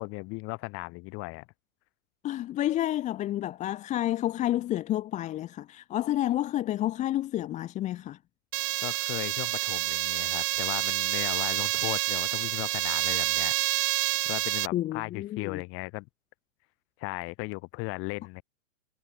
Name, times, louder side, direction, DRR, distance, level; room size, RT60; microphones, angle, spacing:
voice 1, 0.0-1.5 8.8-13.8 14.2-16.1 17.0-18.4, left 27 dB, 35° left, 3.6 m, -36 dB
voice 2, 2.2-8.2 14.7-15.6, left 13 dB, 20° left, 1.0 m, -30 dB
sound 1, 8.5-14.7, right 19 dB, 45° right, 1.2 m, -28 dB
hypercardioid pair, 140°, 39 cm